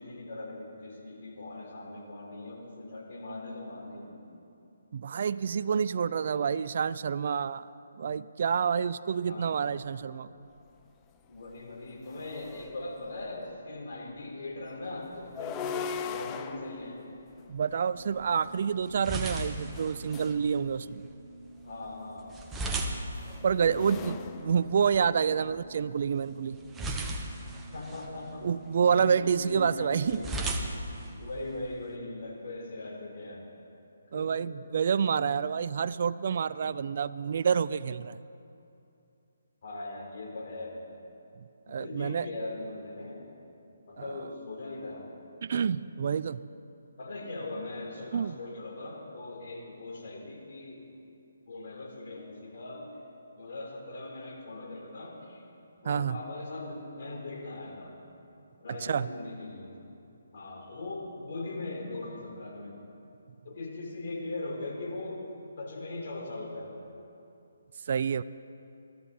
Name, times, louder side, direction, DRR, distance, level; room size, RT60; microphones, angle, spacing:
voice 1, 0.0-4.2 9.3-9.6 11.3-17.1 21.6-22.4 23.6-24.0 27.7-28.5 28.9-30.3 31.2-33.5 34.1-34.4 39.6-40.8 41.7-43.3 43.9-45.1 47.0-50.9 51.5-52.9 53.4-55.4 55.8-58.0 58.6-59.8 60.3-62.8 63.4-65.3 65.6-66.7, left 2 dB, 55° left, -1 dB, 3.9 m, -40 dB
voice 2, 4.9-7.6 8.0-10.3 17.5-21.0 23.4-26.6 26.9-27.0 28.4-30.2 34.1-38.2 41.7-42.3 45.4-46.4 48.1-48.4 55.8-56.2 58.8-59.1 67.9-68.2, right 7 dB, 50° right, 16 dB, 0.4 m, -28 dB
sound 1, 10.8-10.9 11.3-13.3 15.1-18.4 19.7-20.4 21.8-25.3, left 7 dB, 20° left, 0.5 m, -41 dB
sound 2, 18.0-31.9, right 2 dB, 10° right, 1.0 m, -39 dB
21.5 x 13.0 x 4.3 m, 2.7 s
hypercardioid pair, 155°, 0 cm